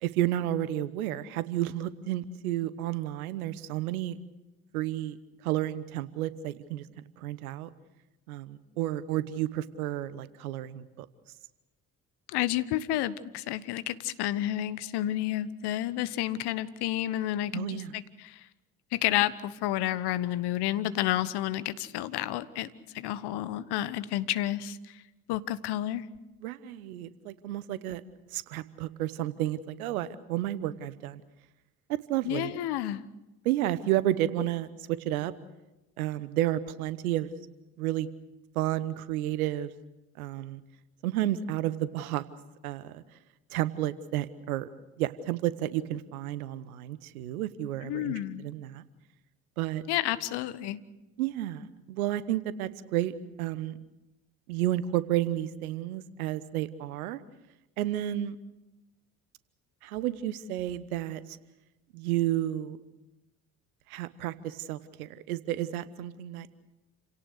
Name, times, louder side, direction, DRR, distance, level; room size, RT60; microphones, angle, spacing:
voice 1, 0.0-4.2 4.7-5.2 5.4-6.9 7.2-7.7 8.3-11.1 17.5-17.9 26.4-28.0 28.3-31.2 31.9-32.6 33.4-35.3 36.0-37.3 37.8-38.1 38.5-39.7 40.2-40.6 41.0-42.2 42.6-43.0 43.5-44.7 45.0-48.8 49.6-49.8 51.2-53.8 54.5-57.2 57.8-58.4 59.8-61.2 61.9-62.8 63.9-66.5, right 13 dB, 80° right, 16 dB, 1.1 m, -31 dB
voice 2, 12.3-18.4 18.9-22.7 22.9-24.8 25.3-26.0 32.2-33.0 47.8-48.5 49.9-50.8, left 13 dB, 65° left, 16 dB, 1.2 m, -30 dB
29.5 x 17.5 x 6.5 m, 1.0 s
hypercardioid pair, 50°, 43 cm